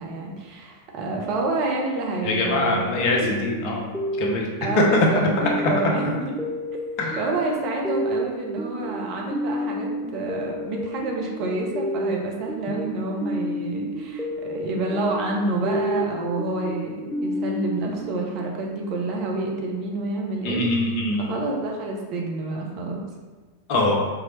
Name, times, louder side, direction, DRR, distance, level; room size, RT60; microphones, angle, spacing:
voice 1, 0.0-3.0 4.6-6.3 7.2-23.0, right 2 dB, 40° right, -1 dB, 0.8 m, -28 dB
voice 2, 2.2-3.9 4.2-4.5 7.0-7.2 20.4-21.2 23.7-24.0, left 2 dB, 45° left, 0 dB, 0.8 m, -23 dB
sound 1, 2.5-18.8, equal, 5° left, 0.4 m, -31 dB
4.7 x 2.9 x 3.1 m, 1.4 s
figure-of-eight pair, 90°, 0 cm